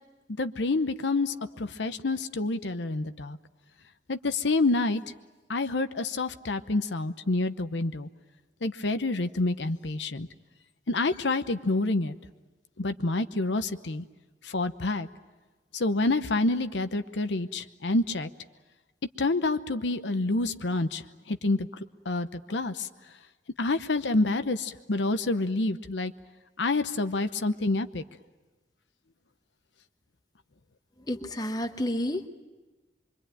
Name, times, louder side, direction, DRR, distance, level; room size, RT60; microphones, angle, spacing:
voice 1, 0.4-3.4 4.1-5.0 5.5-8.1 8.6-10.3 10.9-12.1 12.8-14.0 14.4-15.1 15.7-18.3 19.2-21.7 22.1-22.9 23.6-26.1 26.6-28.0, left 2 dB, 80° left, 10 dB, 0.9 m, -28 dB
voice 2, 31.1-32.3, left 1 dB, 20° left, 7 dB, 1.1 m, -30 dB
25.0 x 23.5 x 9.0 m, 1.2 s
head